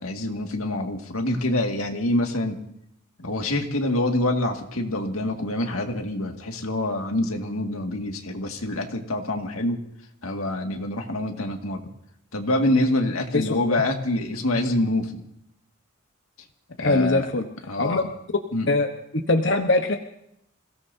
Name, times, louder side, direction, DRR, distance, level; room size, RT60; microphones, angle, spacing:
voice 1, 0.0-2.6 3.2-9.8 10.2-11.8 12.3-15.2 16.8-17.3 17.7-18.0 18.5-18.7, left 1 dB, 90° left, 3 dB, 2.0 m, -26 dB
voice 2, 13.3-13.8 16.8-17.5 17.8-18.1 18.7-18.9 19.3-20.0, left 2 dB, 60° left, 4 dB, 1.1 m, -22 dB
28.0 x 17.5 x 2.7 m, 0.76 s
head